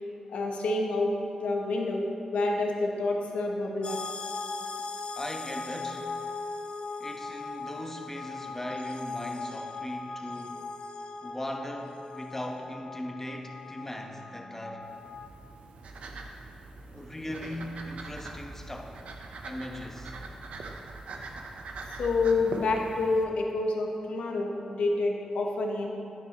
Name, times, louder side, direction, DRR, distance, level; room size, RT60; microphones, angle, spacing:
voice 1, 0.3-1.1 1.4-2.1 2.3-4.0 22.0-25.9, left 3 dB, 80° left, 0 dB, 1.1 m, -28 dB
sound 1, 3.8-15.3, left 3 dB, 55° left, 0.5 m, -39 dB
voice 2, 5.1-6.1 7.0-10.7 11.2-14.9 16.9-19.0 19.4-20.2, left 1 dB, 15° left, 2 dB, 1.1 m, -39 dB
sound 2, 14.8-23.2, right 3 dB, 75° right, 0.7 m, -42 dB
9.8 x 9.2 x 3.0 m, 2.6 s
cardioid pair, 55°, 2 cm